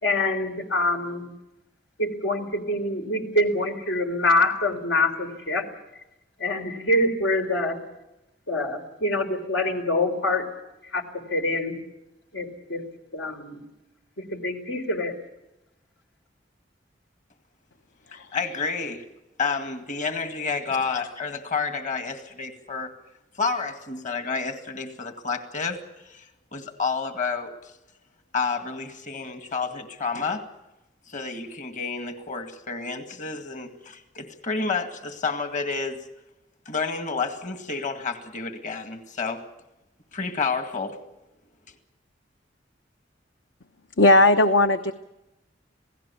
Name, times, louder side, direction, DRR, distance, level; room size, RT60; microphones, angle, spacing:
voice 1, 0.0-1.3 2.0-5.6 6.4-7.8 8.5-10.5 10.9-11.0 11.3-11.8 12.3-12.8 13.1-13.6 14.2-15.1, left 1 dB, 90° left, 5 dB, 3.9 m, -25 dB
voice 2, 18.1-19.0 19.4-22.9 23.4-26.3 26.5-27.5 28.3-30.4 31.1-36.0 36.7-39.4 40.1-41.0, left 4 dB, 45° left, 7 dB, 2.0 m, -30 dB
voice 3, 44.0-44.9, left 2 dB, 75° left, 9 dB, 1.0 m, -17 dB
28.0 x 17.5 x 7.1 m, 0.95 s
head